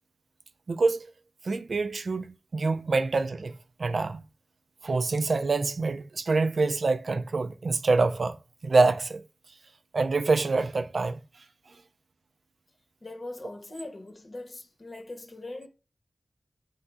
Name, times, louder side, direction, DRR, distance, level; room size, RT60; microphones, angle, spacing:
voice 1, 0.7-1.1 1.4-4.2 4.8-8.4 8.6-9.2 9.9-11.2, right 3 dB, 75° right, 0.4 m, -26 dB
voice 2, 13.0-15.7, left 2 dB, 50° left, 0.8 m, -41 dB
4.4 x 2.5 x 4.0 m
wide cardioid pair, 65°, 0 cm